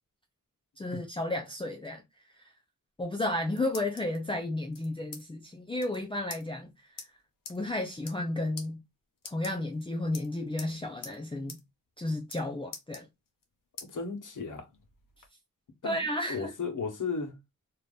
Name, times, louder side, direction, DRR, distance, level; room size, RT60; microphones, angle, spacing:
voice 1, 0.8-2.0 2.4-2.5 3.0-6.7 7.5-8.8 9.2-11.6 12.0-13.1 15.8-16.5, left 1 dB, 15° left, 0.5 m, -32 dB
sound 1, 3.3-4.2 4.7-5.2 5.5-5.6 5.8-6.0 6.3-6.4 7.0-7.1 7.5-7.6 7.9-8.3 8.6-8.7 9.2-9.8 10.1-10.7 11.0-11.2 11.5-11.6 11.9-12.4 12.7-13.4 13.8-13.9 14.4-15.3, left 5 dB, 85° left, 0.9 m, -44 dB
voice 2, 13.8-14.7 15.8-17.3, left 4 dB, 65° left, 1.1 m, -35 dB
2.8 x 2.5 x 3.4 m
wide cardioid pair, 110°, 33 cm